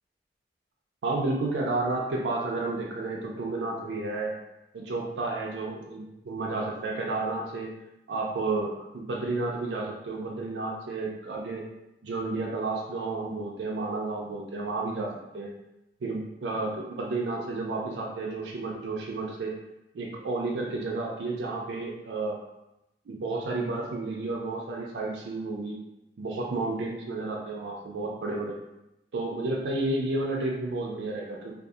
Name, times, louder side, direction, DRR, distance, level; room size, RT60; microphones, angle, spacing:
voice 1, 1.0-4.3 4.7-7.7 8.1-11.6 12.0-15.5 16.0-19.5 19.9-22.4 23.1-25.8 26.2-28.6 29.1-31.5, right 2 dB, 85° right, -1 dB, 0.4 m, -31 dB
2.6 x 2.3 x 2.3 m, 0.90 s
head